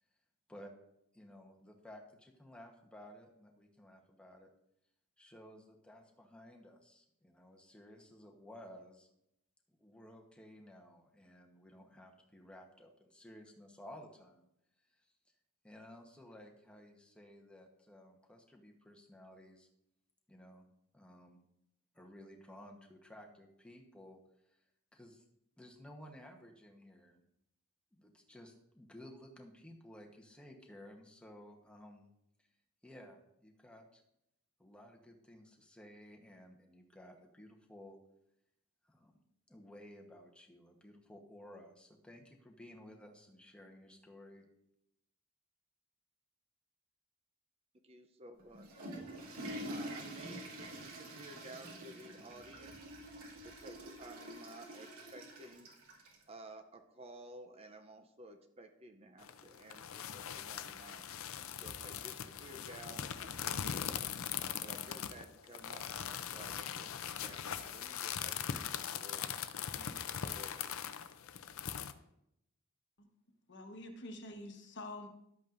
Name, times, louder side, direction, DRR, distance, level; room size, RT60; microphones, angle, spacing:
voice 1, 1.1-4.5 5.2-9.1 9.8-14.5 14.9-15.1 15.6-19.7 20.3-20.7 20.9-21.4 21.9-24.2 24.5-24.6 24.9-25.2 25.6-27.2 28.0-32.1 32.4-32.5 32.8-34.0 34.6-38.0 38.8-39.1 39.5-44.5, left 1 dB, 5° left, 1 dB, 1.0 m, -55 dB
voice 2, 47.8-48.9 49.7-52.8 53.4-55.7 56.3-61.1 61.6-64.2 64.6-69.2 69.7-70.8, right 2 dB, 25° right, 6 dB, 0.6 m, -54 dB
Water / Toilet flush, 48.4-56.2, right 1 dB, 80° right, 2.4 m, -47 dB
sound 1, 59.2-71.9, left 8 dB, 70° left, 0.5 m, -41 dB
voice 3, 73.5-75.1, left 1 dB, 55° left, 4 dB, 1.1 m, -47 dB
12.0 x 8.3 x 2.6 m, 0.80 s
head